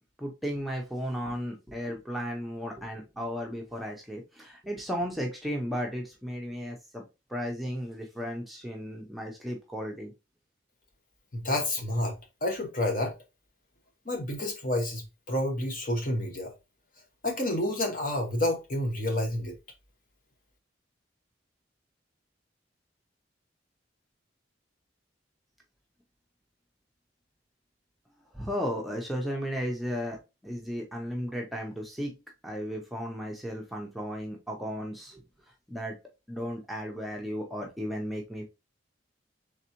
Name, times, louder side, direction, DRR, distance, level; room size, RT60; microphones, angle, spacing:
voice 1, 0.2-7.0 7.3-10.1 28.3-30.2 30.4-32.2 32.4-35.2 35.7-36.0 36.3-38.4, equal, ahead, 0.6 m, -34 dB
voice 2, 11.3-12.2 12.4-13.1 14.0-16.5 17.2-19.6, left 1 dB, 45° left, 1.1 m, -29 dB
4.0 x 3.4 x 2.9 m
head